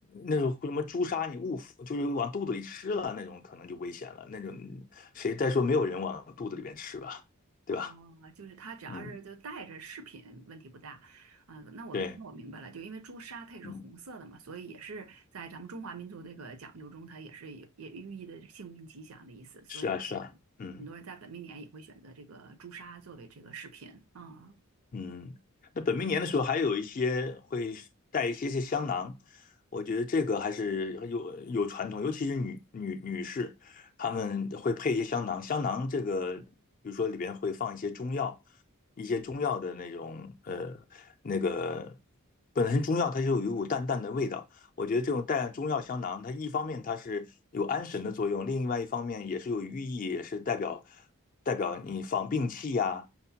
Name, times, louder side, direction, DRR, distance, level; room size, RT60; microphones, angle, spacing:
voice 1, 0.1-7.2 7.7-7.9 8.9-9.2 11.9-12.1 13.6-13.8 19.7-20.3 20.6-20.9 24.9-25.4 25.8-27.9 28.1-29.2 29.7-36.5 36.8-38.4 39.0-41.9 42.6-44.4 44.8-47.3 47.5-50.8 51.5-53.1, left 4 dB, 40° left, 0.4 m, -32 dB
voice 2, 7.7-20.0 20.8-24.6, right 4 dB, 80° right, 0.6 m, -46 dB
5.7 x 2.1 x 2.7 m
head